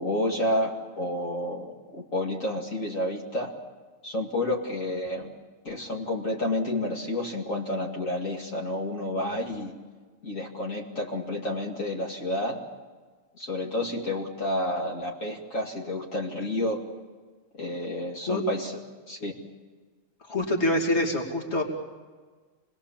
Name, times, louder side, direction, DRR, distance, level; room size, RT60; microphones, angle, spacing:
voice 1, 0.0-3.5 4.0-5.3 5.6-9.7 10.2-12.6 13.4-16.8 17.6-18.7 19.1-19.3, left 1 dB, 80° left, -1 dB, 2.7 m, -30 dB
voice 2, 20.3-21.6, left 1 dB, 55° left, 1 dB, 3.1 m, -25 dB
27.5 x 20.5 x 7.3 m, 1.4 s
omnidirectional pair, 1.4 m